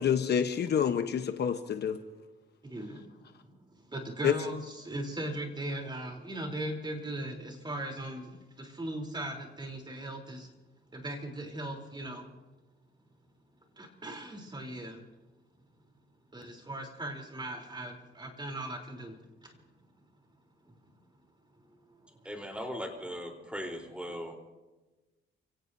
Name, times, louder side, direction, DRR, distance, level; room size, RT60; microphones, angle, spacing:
voice 1, 0.0-2.0 4.2-4.3, left 8 dB, 55° left, 8 dB, 1.1 m, -27 dB
voice 2, 2.6-10.5 10.9-12.3 13.8-15.1 16.3-19.6 21.9-22.1 24.1-24.2, right 1 dB, 20° right, 3 dB, 3.7 m, -39 dB
voice 3, 22.2-24.3, equal, 5° right, 2 dB, 4.0 m, -38 dB
30.0 x 17.0 x 2.8 m, 1.2 s
cardioid pair, 90°, 20 cm